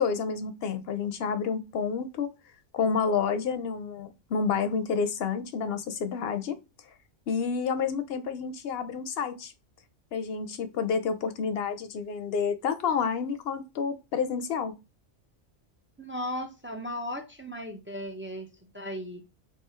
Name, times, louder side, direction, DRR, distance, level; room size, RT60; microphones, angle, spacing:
voice 1, 0.0-2.3 2.7-6.6 7.3-9.5 10.1-14.7, left 6 dB, 65° left, 0.8 m, -29 dB
voice 2, 16.0-19.2, left 1 dB, 20° right, 0.3 m, -36 dB
3.6 x 2.6 x 4.2 m
omnidirectional pair, 1.2 m